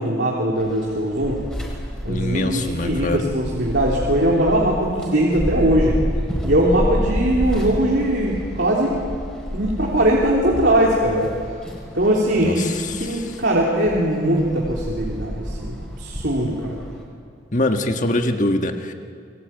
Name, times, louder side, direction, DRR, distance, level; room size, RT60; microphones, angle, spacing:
voice 1, 0.0-1.4 2.0-6.0 6.4-8.9 9.5-11.3 11.9-12.7 13.0-16.7, right 1 dB, 75° right, -4 dB, 3.6 m, -20 dB
sound 1, 0.6-17.0, equal, 5° left, 5.1 m, -30 dB
voice 2, 2.1-3.3 12.4-13.2 17.5-18.9, left 1 dB, 45° left, 5 dB, 1.5 m, -23 dB
28.5 x 22.0 x 9.1 m, 2.3 s
head